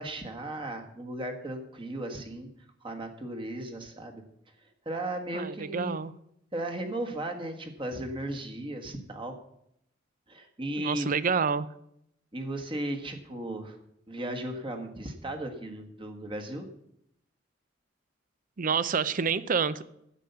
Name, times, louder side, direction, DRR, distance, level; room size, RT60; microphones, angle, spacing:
voice 1, 0.0-2.5 2.8-4.2 4.8-5.9 6.5-9.3 10.3-11.1 12.3-13.8 14.1-16.7, right 1 dB, 25° right, 1.6 m, -36 dB
voice 2, 5.3-6.1 10.8-11.7 18.6-19.8, right 5 dB, 45° right, 0.5 m, -28 dB
10.0 x 8.4 x 6.8 m
head